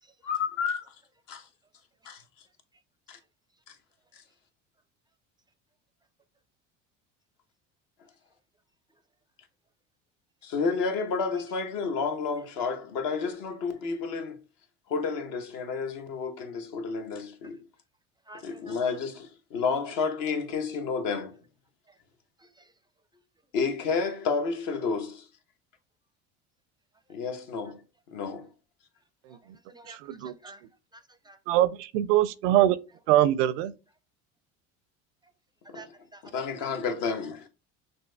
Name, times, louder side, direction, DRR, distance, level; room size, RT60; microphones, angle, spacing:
voice 1, 0.2-0.9 1.3-1.5 2.0-2.2 3.1-3.2 3.7-3.8 4.1-4.2 10.4-14.4 14.9-17.6 18.4-21.4 23.5-25.3 27.1-27.8 28.1-28.5 35.7-35.9 36.3-37.5, left 5 dB, 65° left, 1.1 m, -30 dB
voice 2, 18.3-18.8 21.9-22.0 22.4-22.7 29.3-29.4 29.7-30.6 30.9-31.4 35.7-36.7, right 2 dB, 10° right, 0.4 m, -50 dB
voice 3, 29.9-30.3 31.5-32.8 33.1-33.7, right 13 dB, 80° right, 0.5 m, -23 dB
6.2 x 2.6 x 2.2 m
hypercardioid pair, 80°, 37 cm